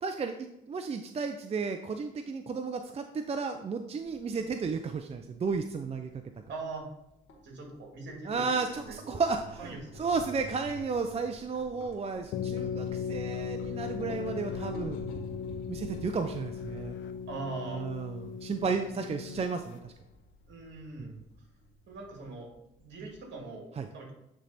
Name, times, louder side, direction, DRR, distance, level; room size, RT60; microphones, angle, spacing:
voice 1, 0.0-6.1 8.3-15.0 15.7-16.9 17.7-19.9 21.0-21.1 23.8-23.9, right 4 dB, 30° right, 7 dB, 0.4 m, -33 dB
sound 1, 4.0-23.5, left 1 dB, 90° left, 1.6 m, -49 dB
voice 2, 6.5-6.9 7.4-9.2 9.6-10.0 17.3-17.9 20.5-21.2 21.9-22.5 22.8-24.1, right 3 dB, 65° right, 0 dB, 2.2 m, -41 dB
sound 2, 12.3-19.8, left 7 dB, 75° left, 0.5 m, -37 dB
9.1 x 3.3 x 4.1 m, 0.84 s
cardioid pair, 90°, 20 cm